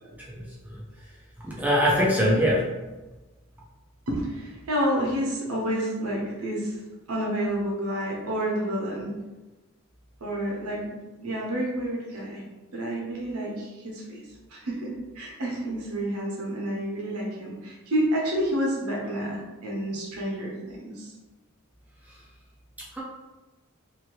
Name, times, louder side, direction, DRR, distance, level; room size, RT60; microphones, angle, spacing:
voice 1, 0.3-0.8 1.4-2.6 22.9-23.0, equal, 5° right, -5 dB, 0.4 m, -23 dB
voice 2, 4.1-6.8 7.1-9.1 10.2-12.4 12.7-14.2 14.5-21.1, right 1 dB, 90° right, -3 dB, 0.9 m, -29 dB
2.8 x 2.6 x 3.0 m, 1.2 s
head